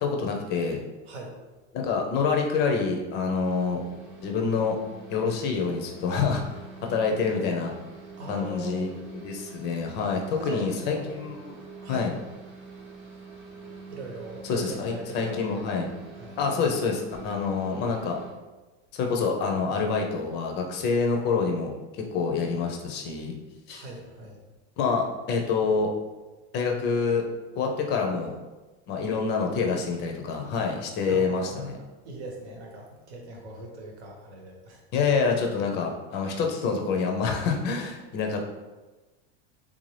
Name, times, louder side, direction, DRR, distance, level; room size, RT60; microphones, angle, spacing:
voice 1, 0.0-0.8 1.7-3.8 4.2-4.8 5.1-6.4 6.8-7.7 8.3-11.6 11.9-12.1 14.4-15.9 16.4-18.2 18.9-23.4 23.7-23.9 24.8-25.9 26.5-27.2 27.5-28.3 28.9-31.8 34.9-38.5, left 5 dB, 30° left, 2 dB, 0.4 m, -27 dB
sound 1, 3.4-18.3, right 2 dB, 35° right, 0.8 m, -45 dB
voice 2, 8.2-8.9 10.4-11.1 11.8-12.1 13.9-15.6 16.2-16.4 23.7-24.4 31.1-34.8, right 2 dB, 85° right, 1 dB, 1.1 m, -40 dB
3.5 x 2.6 x 3.2 m, 1.2 s
supercardioid pair, 145°, 33 cm